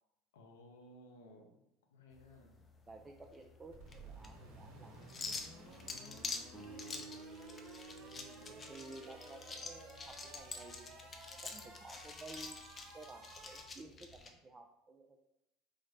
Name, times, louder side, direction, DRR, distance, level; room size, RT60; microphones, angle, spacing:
voice 1, 0.3-1.6 1.9-2.6 5.6-7.1 7.9-8.7, left 1 dB, 85° left, 3 dB, 0.5 m, -59 dB
sound 1, 2.1-14.3, left 4 dB, 30° left, 0.5 m, -47 dB
voice 2, 2.9-5.0 7.1-7.2 8.5-12.6 12.9-15.2, right 3 dB, 25° right, 2 dB, 0.3 m, -54 dB
sound 2, 3.7-13.6, right 2 dB, 65° right, 1.0 m, -55 dB
sound 3, 6.5-10.7, right 4 dB, 5° left, 0.8 m, -55 dB
3.6 x 2.1 x 3.2 m, 0.87 s
hypercardioid pair, 75°, 0 cm